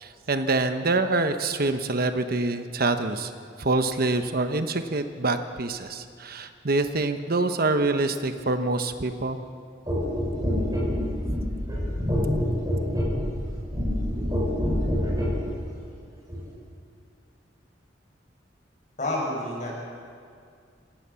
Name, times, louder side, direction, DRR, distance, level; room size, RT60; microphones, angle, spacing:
voice 1, 0.0-3.3 3.6-9.4, right 2 dB, 55° right, 8 dB, 1.1 m, -26 dB
sound 1, 9.9-15.4 16.3-16.5, left 1 dB, 20° right, 6.3 m, -26 dB
voice 2, 19.0-19.7, left 1 dB, 40° left, -1 dB, 6.6 m, -29 dB
28.0 x 16.5 x 7.1 m, 2.3 s
head